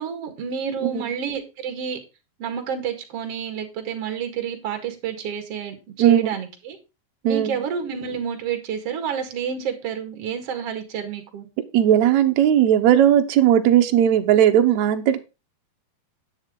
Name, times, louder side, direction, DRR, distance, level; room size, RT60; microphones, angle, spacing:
voice 1, 0.0-2.0 2.4-6.8 7.2-11.5, right 7 dB, 45° right, 6 dB, 2.4 m, -29 dB
voice 2, 11.7-15.2, right 10 dB, 70° right, 6 dB, 1.8 m, -17 dB
9.9 x 9.1 x 3.7 m, 0.28 s
omnidirectional pair, 4.4 m